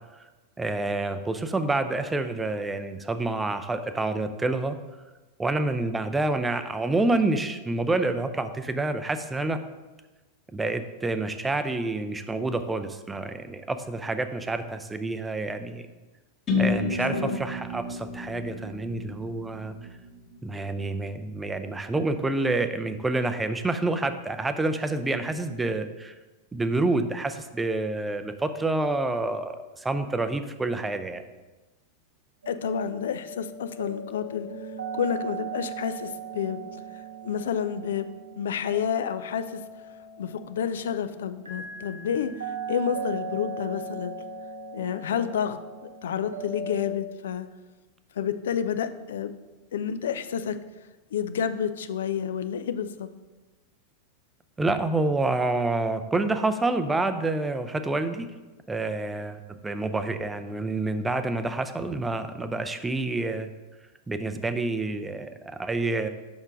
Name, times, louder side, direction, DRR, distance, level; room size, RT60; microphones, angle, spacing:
voice 1, 0.6-4.8 5.4-9.6 10.5-15.9 16.6-19.7 20.4-26.1 26.5-31.2 54.6-58.3 58.7-63.5 64.1-66.1, right 2 dB, 10° right, 9 dB, 0.5 m, -28 dB
sound 1, 16.5-20.3, left 3 dB, 30° left, 1.6 m, -30 dB
voice 2, 16.9-17.4 32.5-34.5 34.9-36.6 37.2-38.1 38.4-39.6 40.2-42.3 42.7-44.1 44.7-45.6 46.0-47.5 48.2-49.3 49.7-50.6 51.1-53.1, left 8 dB, 60° left, 11 dB, 0.4 m, -29 dB
sound 2, 32.4-46.9, right 4 dB, 75° right, 0.8 m, -38 dB
5.8 x 4.4 x 5.1 m, 1.2 s
figure-of-eight pair, 90°, 0 cm